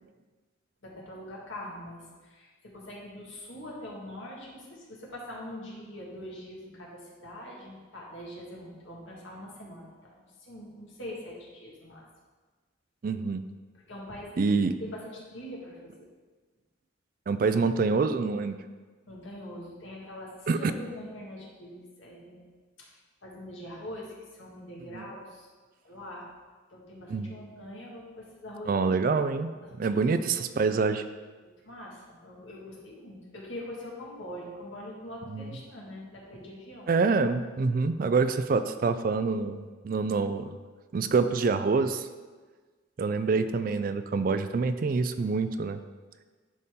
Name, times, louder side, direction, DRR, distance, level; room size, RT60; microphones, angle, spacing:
voice 1, 0.8-10.1 10.4-12.0 13.9-16.1 19.1-22.5 22.8-22.9 23.2-24.1 24.4-25.5 25.8-26.3 26.7-29.0 29.7-30.1 31.4-36.9, left 1 dB, 75° left, -4 dB, 1.8 m, -43 dB
voice 2, 13.0-13.4 14.4-14.7 17.3-18.6 20.5-20.7 24.9-25.0 27.1-27.3 28.7-29.5 29.8-31.0 35.3-35.6 36.9-40.6 40.9-42.1 43.0-45.8, right 4 dB, 45° right, 11 dB, 0.3 m, -26 dB
10.5 x 4.2 x 3.7 m, 1.4 s
head